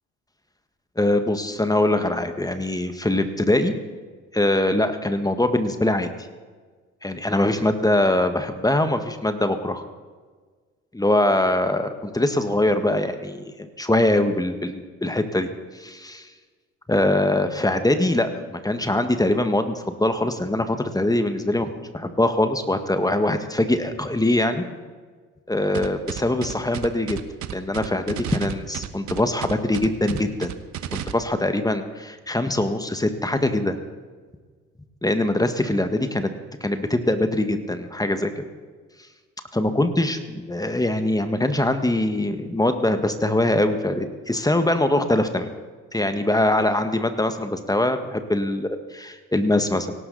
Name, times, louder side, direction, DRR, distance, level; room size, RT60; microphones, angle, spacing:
voice 1, 1.0-3.7 4.3-6.1 7.0-9.8 10.9-15.5 15.7-16.3 16.9-24.6 25.5-27.2 27.5-30.5 30.9-33.8 35.0-36.3 36.6-38.4 39.5-45.5 45.9-49.9, left 1 dB, 10° left, 8 dB, 1.6 m, -23 dB
sound 1, 25.7-31.1, right 11 dB, 55° right, 1.1 m, -32 dB
18.0 x 17.5 x 4.1 m, 1.5 s
hypercardioid pair, 55°, 35 cm